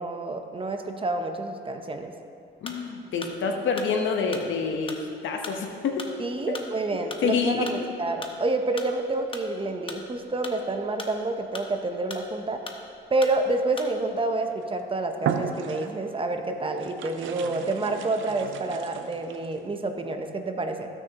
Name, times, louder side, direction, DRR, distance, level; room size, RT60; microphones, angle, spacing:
voice 1, 0.0-2.1 6.2-12.6 13.1-20.9, right 2 dB, 25° right, 5 dB, 0.8 m, -28 dB
voice 2, 2.6-5.0 5.2-6.0 6.5-6.6 7.2-7.9, left 5 dB, 75° left, 3 dB, 1.1 m, -27 dB
sound 1, 2.6-14.2, left 3 dB, 25° left, 0.9 m, -40 dB
sound 2, 14.5-14.7 15.2-16.2 16.8-19.5, right 7 dB, 80° right, 0.6 m, -34 dB
15.0 x 6.4 x 3.0 m, 2.5 s
cardioid pair, 90°, 20 cm